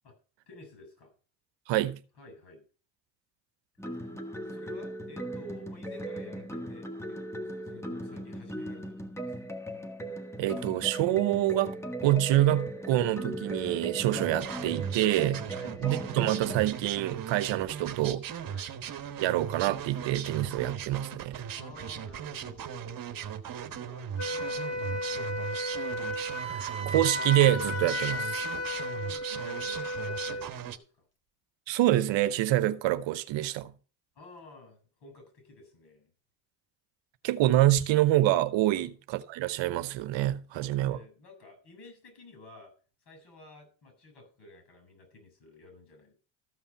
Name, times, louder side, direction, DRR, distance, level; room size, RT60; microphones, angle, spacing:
voice 1, 0.5-1.1 2.2-2.6 3.9-4.0 4.5-9.4 15.5-15.7 18.5-18.7 21.5-23.2 23.8-25.7 28.9-31.0 34.1-36.1 38.8-38.9 40.5-42.7 43.0-46.1, left 2 dB, 55° left, 7.2 m, -52 dB
voice 2, 1.7-2.0 10.4-11.7 12.0-15.4 15.8-18.3 19.2-21.5 26.4-28.4 31.7-33.7 37.2-41.0, right 14 dB, 65° right, 0.9 m, -26 dB
sound 1, 3.8-16.6, right 1 dB, 5° left, 1.6 m, -38 dB
sound 2, 14.1-30.8, right 8 dB, 45° right, 1.2 m, -38 dB
Wind instrument woodwind instrument, 24.2-30.5, left 1 dB, 30° left, 2.4 m, -34 dB
14.0 x 5.5 x 5.7 m
supercardioid pair, 75°, 48 cm